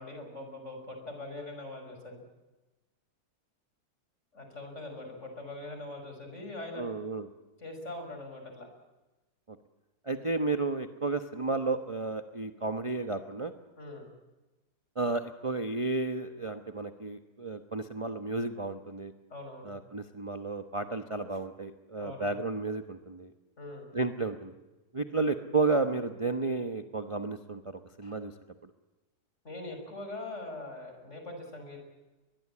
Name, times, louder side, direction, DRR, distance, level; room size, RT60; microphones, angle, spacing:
voice 1, 0.0-2.2 4.3-6.8 7.6-8.7 13.8-14.1 19.3-19.7 22.0-22.4 23.6-23.9 29.4-31.8, left 2 dB, 45° left, 4 dB, 6.1 m, -42 dB
voice 2, 6.7-7.3 9.5-9.6 10.1-13.5 15.0-19.1 19.6-23.3 23.9-24.5 24.9-28.3, right 3 dB, 25° right, 7 dB, 0.9 m, -32 dB
23.0 x 21.5 x 8.5 m, 1.1 s
omnidirectional pair, 1.7 m